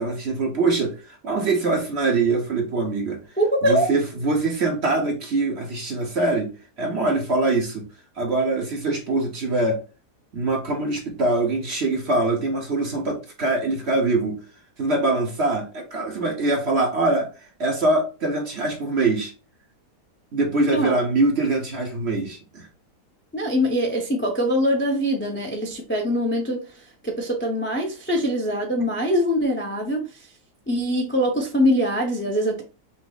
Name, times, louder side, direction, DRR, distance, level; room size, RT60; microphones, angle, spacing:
voice 1, 0.0-3.2 3.6-6.5 6.8-7.8 8.2-9.8 10.3-14.3 14.8-17.3 17.6-19.3 20.3-22.7, right 2 dB, 45° right, 1 dB, 1.1 m, -23 dB
voice 2, 3.4-3.9 20.7-21.0 23.3-26.6 27.0-30.0 30.7-32.6, equal, 15° left, 0 dB, 0.4 m, -23 dB
6.0 x 2.0 x 3.9 m, 0.32 s
omnidirectional pair, 1.8 m